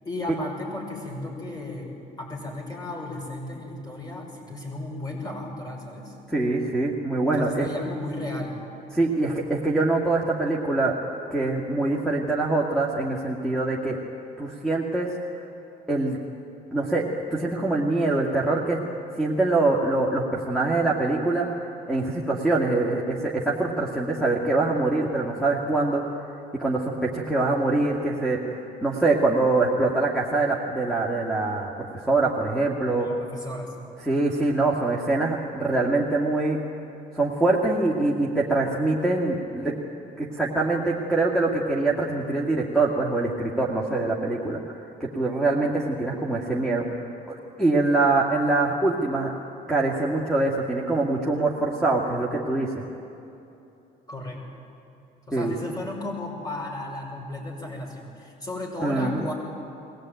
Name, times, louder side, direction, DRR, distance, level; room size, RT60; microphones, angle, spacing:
voice 1, 0.0-1.9 2.2-6.1 7.3-8.6 33.0-33.9 54.1-54.4 55.3-59.3, left 2 dB, 25° left, 0 dB, 6.2 m, -34 dB
voice 2, 6.3-7.7 8.9-10.9 11.3-14.0 14.4-15.1 15.9-16.2 16.7-17.0 17.3-18.8 19.2-26.2 26.5-33.1 34.0-36.6 37.1-39.7 40.2-46.8 47.3-49.3 49.7-52.8 55.3-55.5 58.8-59.2, right 2 dB, 5° left, -1 dB, 2.1 m, -24 dB
22.0 x 18.0 x 9.3 m, 2.9 s
cardioid pair, 110°, 17 cm